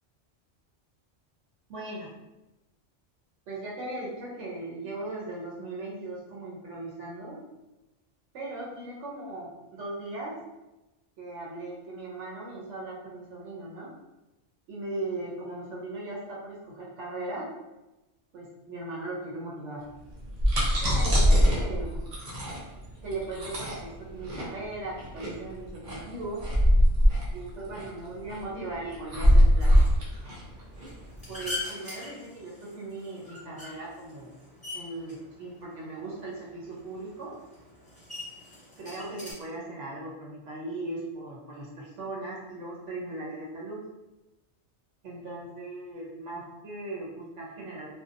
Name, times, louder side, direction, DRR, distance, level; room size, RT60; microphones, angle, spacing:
voice 1, 1.7-2.1 3.5-7.4 8.3-10.4 11.2-13.9 14.7-17.5 18.3-19.9 20.8-22.0 23.0-26.4 27.3-29.8 31.3-34.4 34.7-37.3 38.8-43.9 45.0-47.9, right 2 dB, 85° right, -4 dB, 1.0 m, -38 dB
sound 1, 20.1-31.5, equal, 45° right, 0.7 m, -23 dB
sound 2, 29.6-39.3, left 2 dB, 5° left, 0.8 m, -43 dB
2.6 x 2.2 x 2.5 m, 1.0 s
omnidirectional pair, 1.2 m